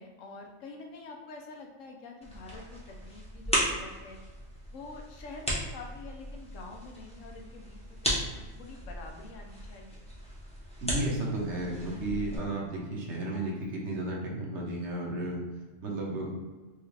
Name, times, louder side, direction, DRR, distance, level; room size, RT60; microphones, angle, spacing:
voice 1, 0.0-4.2 4.7-10.1, left 3 dB, 75° left, 2 dB, 1.0 m, -47 dB
sound 1, 2.2-12.4, equal, 5° left, 0.8 m, -36 dB
voice 2, 10.8-15.4 15.8-16.4, right 1 dB, 65° right, -2 dB, 1.2 m, -33 dB
4.7 x 2.3 x 3.2 m, 1.3 s
omnidirectional pair, 1.4 m